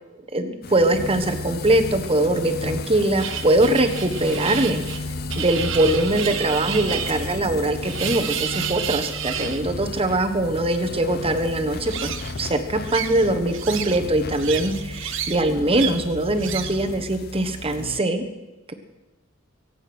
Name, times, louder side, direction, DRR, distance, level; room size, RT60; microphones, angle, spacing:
voice 1, 0.3-4.8 5.3-18.2 18.7-18.8, right 1 dB, 30° right, 7 dB, 1.3 m, -22 dB
sound 1, 0.6-18.0, left 2 dB, 50° left, 0.7 m, -33 dB
sound 2, 3.2-9.6 11.8-12.4 12.8-14.0 14.3-15.4 15.7-16.0 16.4-16.8, right 9 dB, 65° right, 0.9 m, -31 dB
23.5 x 8.3 x 6.1 m, 1.1 s
head